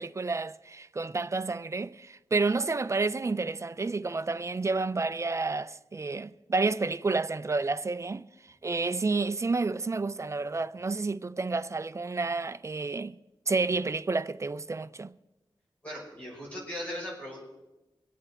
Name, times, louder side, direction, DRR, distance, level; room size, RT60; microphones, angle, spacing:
voice 1, 0.0-8.3 8.6-13.2 13.5-15.1, right 3 dB, 35° right, 0.5 m, -30 dB
voice 2, 15.8-17.4, equal, 15° left, 5.7 m, -38 dB
24.0 x 8.4 x 4.5 m
wide cardioid pair, 100°, 9 cm